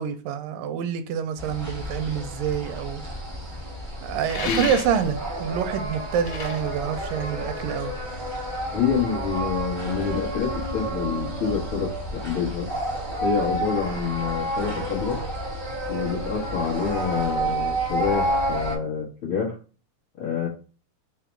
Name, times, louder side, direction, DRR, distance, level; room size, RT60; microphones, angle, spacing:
voice 1, 0.0-3.0 4.0-7.9, right 8 dB, 85° right, 2.2 m, -27 dB
Night at Anchor - The Nile, 1.4-18.8, right 1 dB, 60° right, 0.5 m, -30 dB
sound 1, 4.3-5.3 6.0-7.8, left 6 dB, 60° left, 1.7 m, -33 dB
voice 2, 8.7-12.7 13.2-15.2 15.9-19.6 20.2-20.5, left 6 dB, 80° left, 1.1 m, -27 dB
5.5 x 2.0 x 4.5 m
omnidirectional pair, 3.8 m